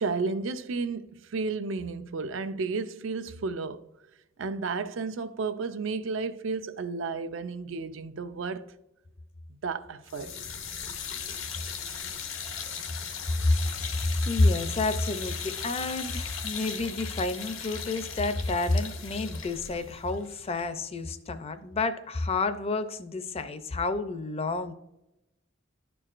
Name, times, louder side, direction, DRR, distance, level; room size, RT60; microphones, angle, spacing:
voice 1, 0.0-3.8 4.4-8.6 9.6-10.3, right 4 dB, 70° right, 0.5 m, -32 dB
sound 1, 10.1-21.1, left 6 dB, 80° left, 0.8 m, -38 dB
voice 2, 13.4-24.7, left 2 dB, 30° left, 0.5 m, -29 dB
11.5 x 4.6 x 2.5 m
head